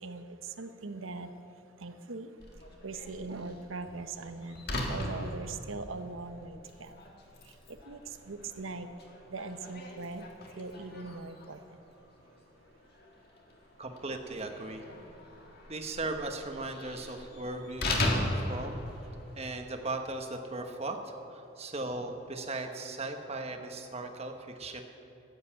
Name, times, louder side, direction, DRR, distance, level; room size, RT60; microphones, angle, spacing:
voice 1, 0.0-1.3 1.8-2.3 2.8-6.9 7.9-8.0 8.3-8.9 9.3-10.3 10.6-11.6, right 3 dB, 80° right, 9 dB, 0.9 m, -40 dB
Slam, 2.4-19.5, left 1 dB, 50° left, 1.8 m, -39 dB
voice 2, 13.8-14.8 15.7-18.8 19.3-24.8, right 2 dB, 30° right, 5 dB, 1.1 m, -38 dB
14.5 x 8.1 x 8.9 m, 2.9 s
head